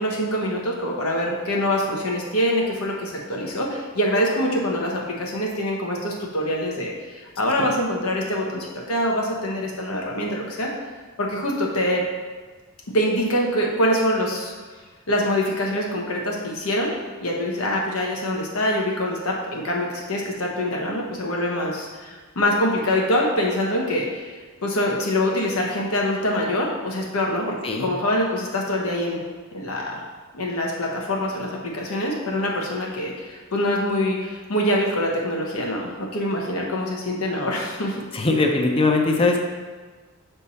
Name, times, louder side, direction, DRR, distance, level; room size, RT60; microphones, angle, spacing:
voice 1, 0.0-10.7 11.2-12.0 12.9-14.5 15.1-16.9 17.2-29.2 29.5-30.0 30.3-38.0, left 1 dB, 90° left, -1 dB, 1.2 m, -24 dB
voice 2, 38.1-39.4, left 3 dB, 25° left, 2 dB, 0.5 m, -20 dB
7.0 x 3.5 x 4.2 m, 1.4 s
head